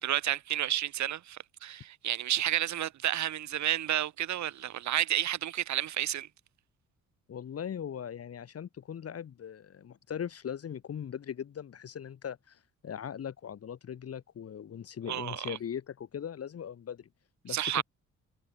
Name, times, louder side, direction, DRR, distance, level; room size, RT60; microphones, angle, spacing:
voice 1, 0.0-6.3 15.1-15.6 17.5-17.8, right 12 dB, 70° right, 1.7 m, -31 dB
voice 2, 7.3-17.1 17.4-17.8, left 8 dB, 50° left, 2.2 m, -40 dB
cardioid pair, 90°, 30 cm